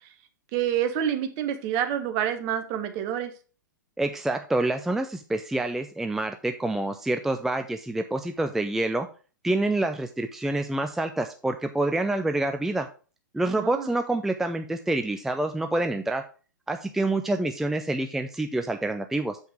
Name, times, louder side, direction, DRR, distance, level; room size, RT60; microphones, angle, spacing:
voice 1, 0.5-3.3 13.6-13.9, right 10 dB, 40° right, 7 dB, 1.3 m, -27 dB
voice 2, 4.0-9.1 9.4-12.9 13.3-16.2 16.7-19.4, right 2 dB, 5° right, 6 dB, 0.4 m, -27 dB
7.7 x 5.3 x 4.7 m, 0.36 s
figure-of-eight pair, 110°, 11 cm